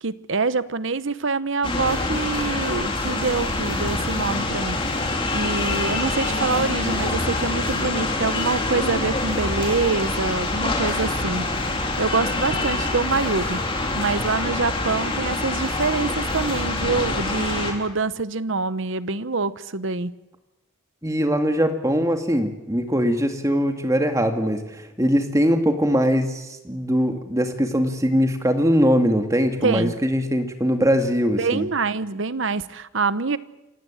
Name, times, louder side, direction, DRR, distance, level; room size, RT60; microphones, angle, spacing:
voice 1, 0.0-4.9 5.3-11.5 12.0-13.6 13.9-20.1 29.6-29.9 31.3-33.4, right 4 dB, 65° right, 15 dB, 0.9 m, -25 dB
sound 1, 1.6-17.7, left 2 dB, 25° left, 3.6 m, -25 dB
voice 2, 21.0-31.7, equal, 15° right, 6 dB, 2.2 m, -21 dB
28.0 x 15.5 x 8.9 m, 0.95 s
head